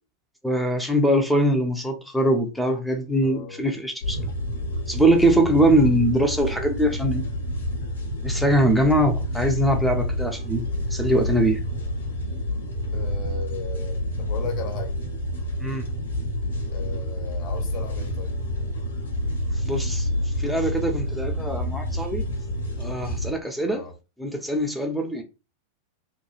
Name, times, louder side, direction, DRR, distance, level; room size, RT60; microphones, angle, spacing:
voice 1, 0.4-4.3 4.9-7.3 8.2-11.6 15.6-15.9 19.5-22.3 22.8-23.8 24.2-25.2, right 1 dB, ahead, 0.4 m, -22 dB
voice 2, 3.2-3.6 12.9-14.9 16.7-18.4 23.7-23.9, left 4 dB, 40° left, 0.8 m, -36 dB
sound 1, 4.0-23.3, equal, 70° left, 0.7 m, -28 dB
2.9 x 2.2 x 2.3 m
figure-of-eight pair, 90°, 0 cm